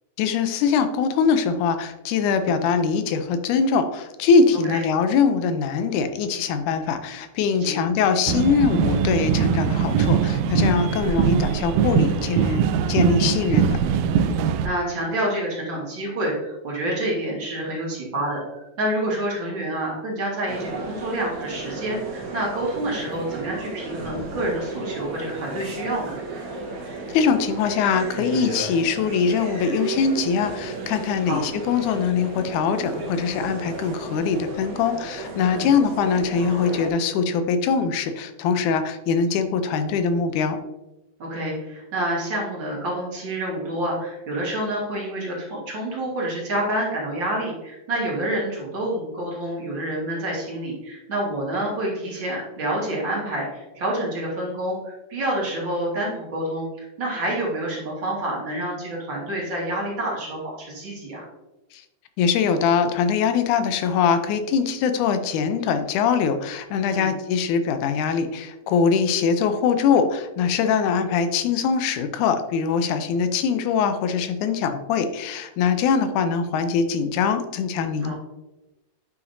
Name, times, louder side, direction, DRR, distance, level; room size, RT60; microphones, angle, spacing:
voice 1, 0.2-13.8 27.1-40.6 61.7-61.8 62.2-78.1, left 6 dB, 85° left, 9 dB, 2.2 m, -22 dB
sound 1, 8.3-14.7, right 8 dB, 90° right, 2.1 m, -21 dB
voice 2, 14.6-26.2 31.3-31.4 35.5-35.7 41.2-61.2 66.9-67.1 78.0-78.1, right 1 dB, 45° right, -4 dB, 2.3 m, -28 dB
sound 2, 20.5-36.9, right 3 dB, 75° right, 2.5 m, -34 dB
9.3 x 5.7 x 2.6 m, 1.0 s
omnidirectional pair, 3.4 m